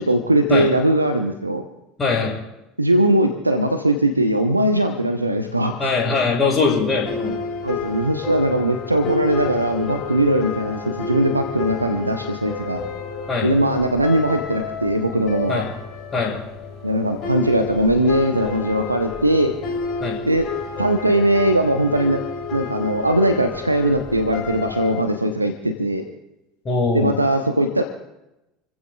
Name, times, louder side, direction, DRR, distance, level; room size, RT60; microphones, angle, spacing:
voice 1, 0.0-1.6 2.8-5.9 7.3-7.4 7.6-12.8 13.4-15.6 16.8-19.5 20.3-20.5 20.8-22.2 22.5-26.0 26.9-27.8, right 1 dB, 85° right, 6 dB, 0.9 m, -20 dB
voice 2, 2.0-2.4 5.8-7.4 13.3-13.5 15.5-15.7 16.1-16.4 20.0-20.2 26.6-27.2, left 4 dB, 25° left, -2 dB, 7.2 m, -21 dB
sound 1, 6.6-25.0, left 5 dB, 45° left, 3.4 m, -31 dB
28.5 x 15.0 x 2.4 m, 0.93 s
figure-of-eight pair, 70°, 0 cm